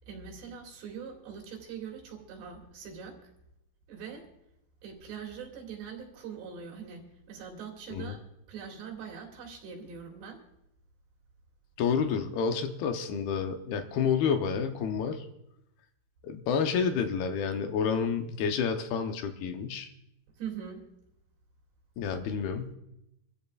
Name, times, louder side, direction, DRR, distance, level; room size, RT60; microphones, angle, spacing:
voice 1, 0.1-3.2 3.9-4.3 4.8-8.2 8.5-10.4 20.4-20.8, right 7 dB, 75° right, -1 dB, 4.7 m, -42 dB
voice 2, 11.8-15.3 16.2-19.9 22.0-22.8, left 6 dB, 75° left, 6 dB, 2.6 m, -29 dB
26.5 x 14.5 x 2.4 m, 0.83 s
omnidirectional pair, 4.9 m